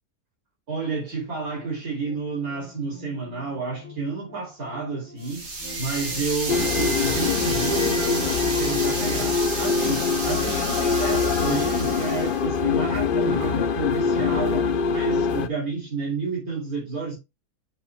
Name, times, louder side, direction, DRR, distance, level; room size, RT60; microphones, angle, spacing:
voice 1, 0.7-5.5 5.8-17.2, right 4 dB, 65° right, 3.4 m, -30 dB
sound 1, 1.1-12.1, left 3 dB, 5° left, 2.3 m, -47 dB
sound 2, 5.2-12.4, right 2 dB, 85° right, 3.3 m, -31 dB
sound 3, 6.5-15.5, left 5 dB, 55° left, 0.6 m, -24 dB
8.3 x 6.6 x 2.2 m
omnidirectional pair, 1.7 m